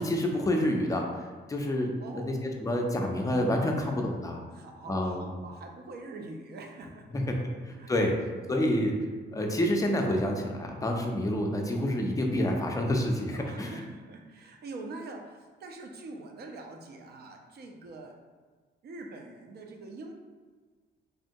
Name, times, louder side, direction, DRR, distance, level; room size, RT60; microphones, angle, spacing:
voice 1, 0.0-4.4 4.9-5.3 7.1-7.3 7.6-8.2 8.5-9.0 9.3-13.7, left 1 dB, 15° left, 1 dB, 0.4 m, -28 dB
voice 2, 2.0-2.4 4.5-7.4 7.7-7.9 13.3-18.2 18.8-20.1, right 2 dB, 55° right, 3 dB, 0.5 m, -44 dB
3.5 x 2.1 x 2.7 m, 1.4 s
cardioid pair, 90°, 20 cm